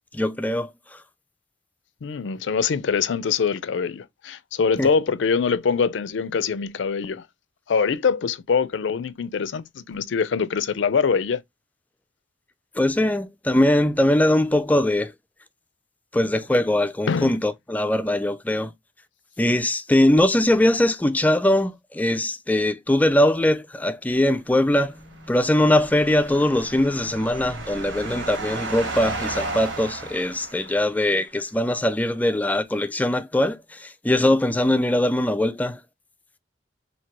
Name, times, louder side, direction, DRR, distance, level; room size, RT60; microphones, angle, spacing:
voice 1, 0.1-0.7 4.8-4.9 12.8-15.1 16.1-18.7 19.4-35.8, left 1 dB, 10° left, 0.3 m, -21 dB
voice 2, 2.0-7.2 7.7-11.4 17.1-17.4, left 5 dB, 75° left, 0.4 m, -23 dB
sound 1, 24.8-31.1, right 3 dB, 75° right, 1.3 m, -34 dB
2.9 x 2.7 x 4.4 m
head